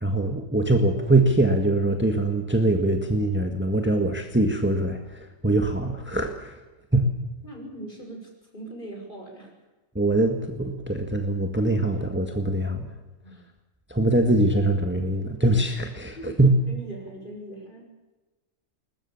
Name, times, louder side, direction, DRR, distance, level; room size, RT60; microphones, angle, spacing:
voice 1, 0.0-6.6 6.9-7.0 10.0-12.9 13.9-16.5, right 2 dB, 10° right, 5 dB, 1.7 m, -23 dB
voice 2, 7.4-9.5 13.2-13.4 16.2-16.3 16.7-17.9, right 1 dB, 35° left, 2 dB, 6.3 m, -40 dB
21.5 x 20.0 x 7.2 m, 1.2 s
omnidirectional pair, 1.4 m